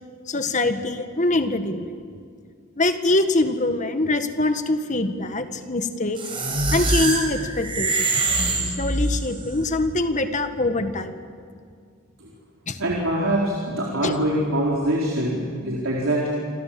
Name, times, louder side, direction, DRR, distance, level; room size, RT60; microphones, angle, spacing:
voice 1, 0.3-1.9 2.8-6.2 6.7-8.1 8.8-11.1 12.7-12.8 14.0-14.2, left 2 dB, 35° left, 8 dB, 1.6 m, -24 dB
sound 1, 6.2-9.4, right 2 dB, 25° right, 5.0 m, -24 dB
voice 2, 12.8-16.3, right 1 dB, 65° right, -4 dB, 4.4 m, -24 dB
28.0 x 26.0 x 7.7 m, 2.2 s
head